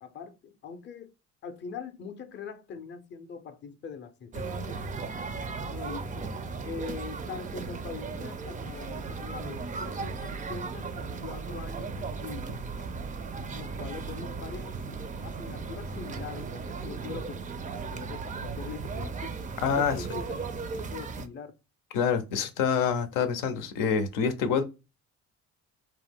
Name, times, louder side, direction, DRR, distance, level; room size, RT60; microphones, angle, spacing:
voice 1, 0.0-1.1 1.4-4.9 5.7-6.3 6.6-12.7 13.5-14.8 15.2-17.4 17.8-19.4 19.7-20.5 20.7-21.5, left 5 dB, 35° left, 0.5 m, -42 dB
sound 1, 4.3-21.3, right 4 dB, 25° right, 0.4 m, -36 dB
voice 2, 19.6-20.0 21.9-24.6, left 6 dB, 85° left, 0.6 m, -26 dB
2.4 x 2.1 x 3.4 m
cardioid pair, 85°, 31 cm